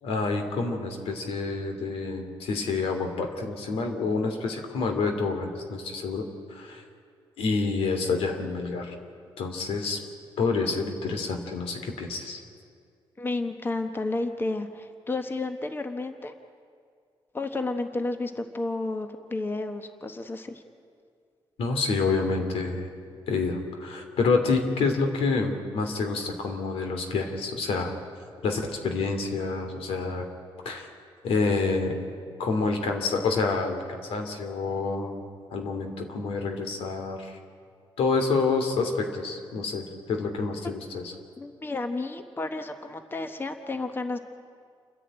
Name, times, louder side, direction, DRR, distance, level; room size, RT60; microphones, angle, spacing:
voice 1, 0.0-6.2 6.5-6.8 7.4-8.9 9.4-10.0 10.4-12.4 21.6-22.9 23.3-27.9 28.4-30.3 30.6-30.9 31.2-32.0 32.4-35.2 35.5-37.4 38.0-41.1, left 4 dB, 90° left, 5 dB, 2.6 m, -28 dB
voice 2, 13.2-16.3 17.3-20.6 41.4-44.2, left 2 dB, 20° left, 7 dB, 1.2 m, -31 dB
29.0 x 10.5 x 8.9 m, 2.2 s
cardioid pair, 110°, 10 cm